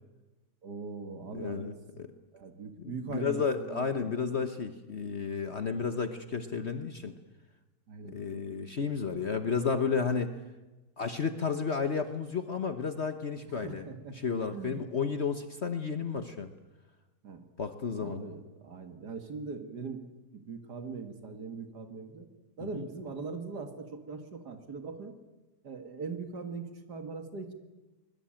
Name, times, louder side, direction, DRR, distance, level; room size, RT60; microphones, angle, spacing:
voice 1, 0.6-2.0 2.3-4.1 7.9-8.2 13.6-14.2 14.5-14.8 17.2-17.4 18.0-20.1 20.3-22.3 22.6-25.2 25.6-27.5, right 4 dB, 80° right, 7 dB, 2.6 m, -41 dB
voice 2, 1.3-2.1 2.8-7.1 8.1-10.3 11.0-13.9 14.1-16.5 17.6-18.2 22.6-22.9, left 5 dB, 45° left, 9 dB, 1.3 m, -32 dB
24.5 x 21.0 x 8.9 m, 1.1 s
omnidirectional pair, 1.7 m